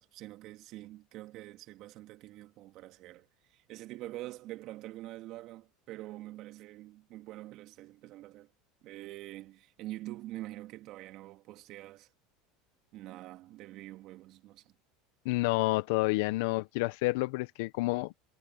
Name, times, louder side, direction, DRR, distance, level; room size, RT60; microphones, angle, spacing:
voice 1, 0.0-8.5 8.8-12.1 12.9-14.7, right 16 dB, 55° right, 2.3 m, -45 dB
voice 2, 15.2-18.2, left 21 dB, 70° left, 0.9 m, -29 dB
hypercardioid pair, 90°, 0 cm